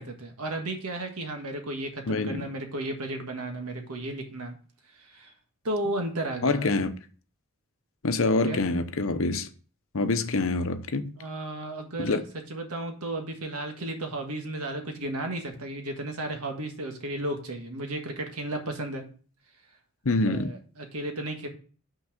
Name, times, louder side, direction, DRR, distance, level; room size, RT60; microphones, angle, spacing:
voice 1, 0.0-4.6 5.0-5.3 5.6-6.7 8.5-8.6 11.2-12.2 12.5-19.0 20.2-21.5, right 1 dB, 85° right, 1.6 m, -34 dB
voice 2, 2.1-2.5 6.4-6.9 8.0-9.5 9.9-11.0 12.0-12.2 20.0-20.5, left 3 dB, 65° left, 0.7 m, -26 dB
6.2 x 4.6 x 5.8 m
head